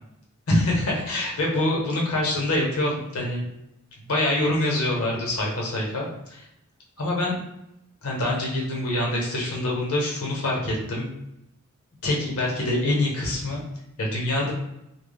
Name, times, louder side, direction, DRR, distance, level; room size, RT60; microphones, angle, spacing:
voice 1, 0.5-3.5 4.1-6.4 7.0-7.4 8.0-11.1 12.0-13.6 14.0-14.5, left 1 dB, 75° left, -2 dB, 0.8 m, -25 dB
2.2 x 2.0 x 3.4 m, 0.83 s
head